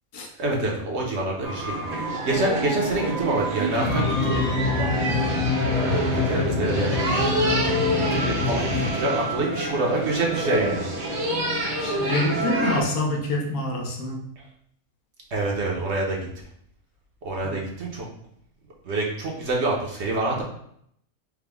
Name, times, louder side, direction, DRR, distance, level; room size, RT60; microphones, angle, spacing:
voice 1, 0.4-1.8 2.2-5.1 5.8-7.3 8.1-11.3 15.3-16.3 17.2-18.0 18.8-20.4, right 2 dB, 55° right, -1 dB, 1.0 m, -27 dB
sound 1, 1.4-12.8, right 1 dB, 80° right, 1.5 m, -27 dB
sound 2, 3.8-8.9, left 4 dB, 35° left, 0.7 m, -26 dB
voice 2, 11.8-14.2 17.4-17.6, left 2 dB, 85° left, 1 dB, 1.3 m, -26 dB
4.8 x 2.2 x 3.4 m, 0.69 s
omnidirectional pair, 1.5 m